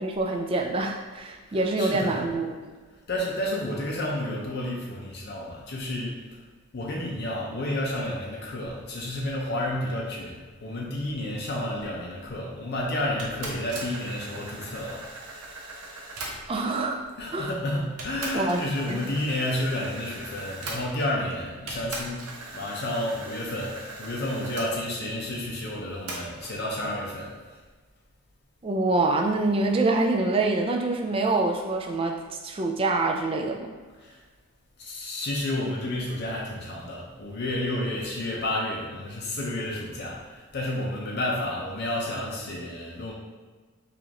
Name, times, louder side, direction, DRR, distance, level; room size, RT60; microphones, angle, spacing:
voice 1, 0.0-2.7 16.5-17.0 17.3-17.5 18.3-19.0 28.6-33.7, right 2 dB, 25° right, 2 dB, 0.3 m, -26 dB
voice 2, 1.5-2.3 3.1-6.4 6.7-15.0 17.2-27.4 34.0-34.2 34.8-43.1, left 1 dB, 45° left, -2 dB, 0.5 m, -31 dB
sound 1, 13.2-16.8 17.5-17.6 18.0-21.3 21.7-24.7 26.1-26.6, right 2 dB, 85° right, 0.8 m, -39 dB
4.9 x 2.5 x 2.9 m, 1.4 s
head